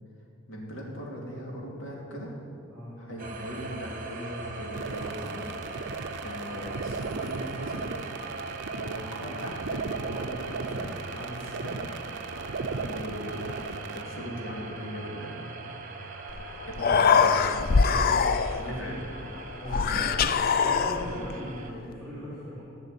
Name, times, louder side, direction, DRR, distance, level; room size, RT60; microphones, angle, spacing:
voice 1, 0.5-2.3 3.0-5.5 6.2-7.9 8.7-11.9 12.2-12.3 12.7-15.5 16.0-17.7 18.7-19.0 19.7-20.1, equal, 70° left, -2 dB, 2.9 m, -39 dB
sound 1, 3.2-21.7, right 3 dB, 40° right, 1.2 m, -41 dB
sound 2, 4.7-14.0, right 4 dB, 60° right, 0.5 m, -36 dB
Human voice, 16.3-16.4 16.7-18.8 19.7-21.3, left 5 dB, 50° left, 0.4 m, -23 dB
voice 2, 17.8-18.1 18.5-19.1 19.6-20.2 20.6-22.6, equal, 5° left, -9 dB, 3.1 m, -38 dB
13.5 x 6.0 x 9.5 m, 2.6 s
head